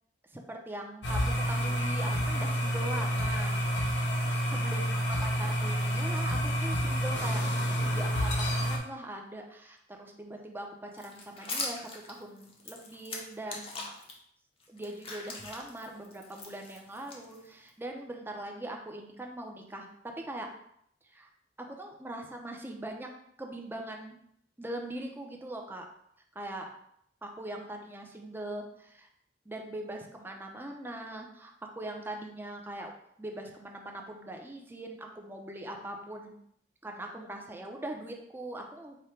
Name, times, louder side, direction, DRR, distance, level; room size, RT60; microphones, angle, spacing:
voice 1, 0.3-3.7 4.5-13.8 14.7-20.5 21.1-21.3 21.6-23.1 23.4-24.2 24.6-25.9 26.3-26.7 27.2-29.1 29.5-32.9 33.2-36.3 36.8-39.0, right 1 dB, 10° right, 2 dB, 0.5 m, -41 dB
sound 1, 1.0-8.8, equal, 90° left, 0.9 m, -29 dB
sound 2, 10.9-14.1 14.6-17.7, left 3 dB, 35° left, 0.7 m, -41 dB
5.0 x 2.2 x 4.3 m, 0.71 s
head